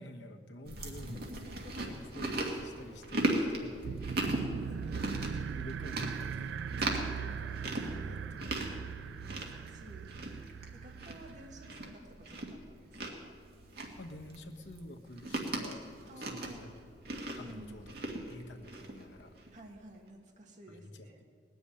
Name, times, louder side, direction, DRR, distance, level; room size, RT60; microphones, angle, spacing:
voice 1, 0.0-1.1 1.8-4.2 5.6-8.6 9.0-9.4 14.0-16.7 17.3-17.9 18.3-19.4 20.7-21.2, left 1 dB, 85° left, 4 dB, 1.3 m, -49 dB
Chewing mastication, 0.7-19.6, right 1 dB, 60° right, 1.9 m, -39 dB
voice 2, 1.1-1.8 4.3-5.1 7.9-8.6 9.1-13.3 16.1-16.8 17.4-18.0 19.5-21.2, right 1 dB, 45° right, 1 dB, 1.5 m, -53 dB
sound 1, 3.8-11.9, right 7 dB, 85° right, 0.3 m, -40 dB
19.0 x 7.0 x 9.9 m, 2.2 s
head